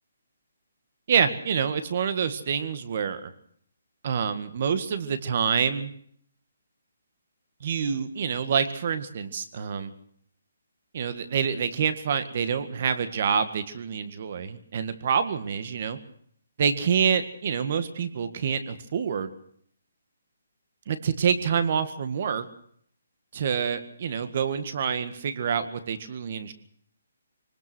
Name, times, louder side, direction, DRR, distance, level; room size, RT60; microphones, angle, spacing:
voice 1, 1.1-3.3 4.0-5.9 7.6-9.9 10.9-16.0 16.6-19.3 20.9-22.5 23.3-26.5, right 7 dB, 40° right, 11 dB, 1.8 m, -27 dB
25.0 x 19.5 x 6.2 m, 0.63 s
hypercardioid pair, 170°, 0 cm